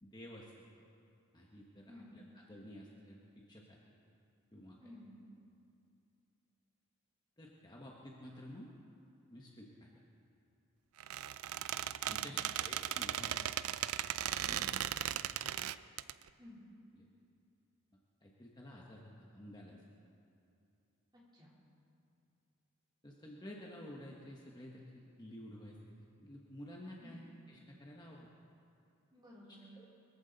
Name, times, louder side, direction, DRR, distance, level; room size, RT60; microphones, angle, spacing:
voice 1, 0.0-0.9 1.3-3.8 4.5-4.8 7.4-8.7 9.3-9.9 12.1-13.4 14.5-14.7 15.1-15.3 17.0-17.1 18.2-19.8 23.0-28.3 29.7-29.9, left 1 dB, 20° left, -2 dB, 1.2 m, -52 dB
voice 2, 4.8-5.2 12.1-12.5 14.4-14.7 16.4-16.6 21.1-21.5 27.0-27.2 29.1-29.7, left 1 dB, 20° right, -6 dB, 3.5 m, -55 dB
Squeak, 11.0-16.1, right 11 dB, 75° right, 0.4 m, -37 dB
22.5 x 14.5 x 4.0 m, 2.6 s
head